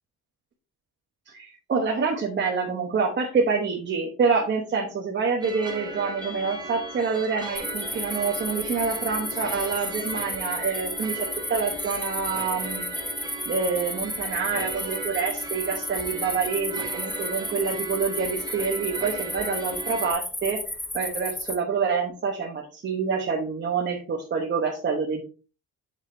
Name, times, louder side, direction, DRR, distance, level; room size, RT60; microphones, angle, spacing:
voice 1, 1.3-12.9 13.5-20.6 20.9-25.2, right 5 dB, 35° right, 1 dB, 1.1 m, -27 dB
sound 1, 5.4-20.1, right 3 dB, 15° right, 1.2 m, -37 dB
sound 2, 7.6-21.6, left 1 dB, 5° left, 0.6 m, -33 dB
7.3 x 7.0 x 2.7 m, 0.35 s
cardioid pair, 175°, 32 cm